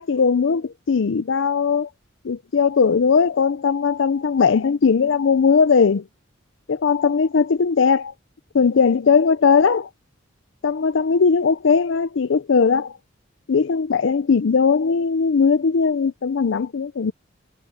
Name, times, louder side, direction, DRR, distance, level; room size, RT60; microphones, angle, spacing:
voice 1, 0.0-1.9 2.2-6.0 6.7-8.1 8.5-9.9 10.6-13.0 13.5-17.1, left 5 dB, 70° left, 0.5 m, -19 dB
head